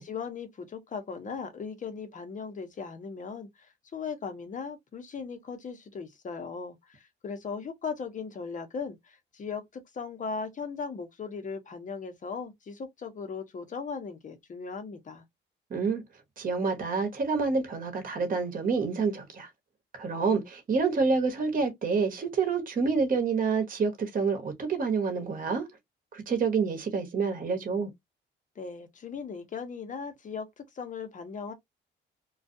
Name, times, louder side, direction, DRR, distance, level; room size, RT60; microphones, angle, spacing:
voice 1, 0.0-15.2 28.6-31.5, left 5 dB, 40° left, 0.8 m, -38 dB
voice 2, 15.7-16.0 16.4-19.5 19.9-25.7 26.1-27.9, right 5 dB, 45° right, 1.0 m, -28 dB
2.3 x 2.2 x 2.6 m
cardioid pair, 90°, 20 cm